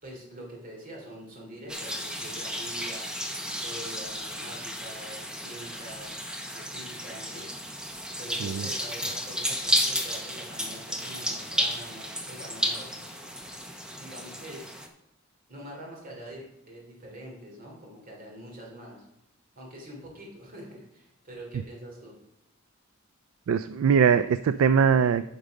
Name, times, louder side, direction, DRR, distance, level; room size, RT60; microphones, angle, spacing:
voice 1, 0.0-6.1 6.5-7.5 8.2-12.9 13.9-14.6 15.5-19.1 19.5-22.1, right 1 dB, 40° right, -2 dB, 3.0 m, -44 dB
sound 1, 1.7-14.9, equal, 5° right, 0.8 m, -33 dB
voice 2, 23.5-25.2, right 6 dB, 80° right, 13 dB, 0.3 m, -21 dB
9.8 x 5.4 x 5.2 m, 0.82 s
head